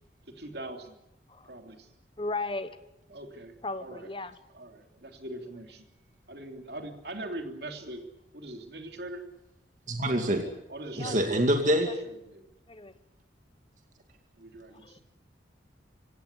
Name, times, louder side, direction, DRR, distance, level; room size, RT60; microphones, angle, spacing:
voice 1, 0.3-1.0 1.5-1.9 3.1-4.1 4.5-5.8 6.3-8.0 8.3-9.2 10.7-11.4 12.0-12.4 14.4-15.0, right 1 dB, 60° right, 5 dB, 3.0 m, -41 dB
voice 2, 2.2-2.8 3.6-4.4 11.0-11.3 12.7-13.0 14.8-15.0, left 2 dB, 25° left, 12 dB, 1.2 m, -35 dB
voice 3, 9.9-10.5 11.0-11.9, right 1 dB, 40° right, 4 dB, 2.4 m, -25 dB
25.5 x 16.5 x 9.7 m, 0.91 s
head